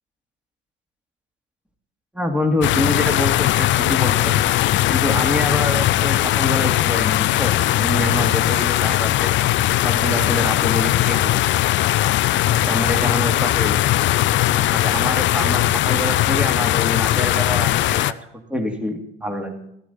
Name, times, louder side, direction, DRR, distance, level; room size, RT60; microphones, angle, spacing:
voice 1, 2.1-4.4 4.9-9.3 9.8-11.4 12.5-13.8 14.5-18.0 18.5-19.5, left 1 dB, 5° right, 4 dB, 2.3 m, -26 dB
sound 1, 2.6-18.1, left 14 dB, 35° left, 0.4 m, -19 dB
14.5 x 12.0 x 4.1 m, 0.75 s
hypercardioid pair, 70°, 36 cm